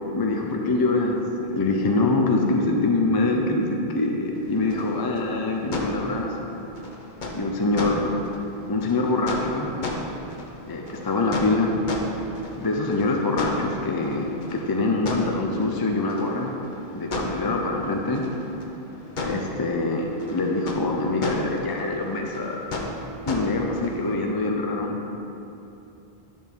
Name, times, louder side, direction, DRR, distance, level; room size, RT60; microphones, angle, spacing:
voice 1, 0.1-1.2 1.5-6.6 7.3-8.2 8.7-9.8 10.7-11.8 12.6-16.5 16.9-18.2 19.2-22.6 23.3-25.0, left 2 dB, 25° left, 1 dB, 0.5 m, -24 dB
sound 1, 4.3-24.1, left 1 dB, 50° left, 0.9 m, -35 dB
10.0 x 6.1 x 3.6 m, 2.9 s
omnidirectional pair, 1.1 m